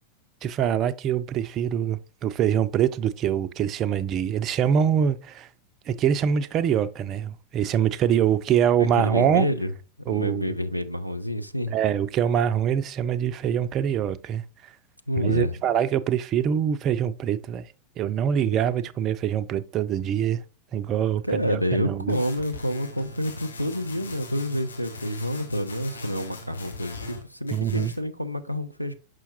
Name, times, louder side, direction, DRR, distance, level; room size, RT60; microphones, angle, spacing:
voice 1, 0.4-5.5 5.9-9.5 10.1-10.5 11.7-14.4 15.2-17.7 18.0-20.4 20.7-22.2 27.5-27.9, right 9 dB, 35° right, 0.4 m, -24 dB
voice 2, 8.8-9.7 10.1-11.7 15.1-15.6 21.2-29.0, equal, 90° left, 0.4 m, -28 dB
sound 1, 22.1-27.2 27.5-28.0, left 2 dB, 70° left, 1.6 m, -41 dB
6.1 x 5.7 x 2.9 m
figure-of-eight pair, 90°, 0 cm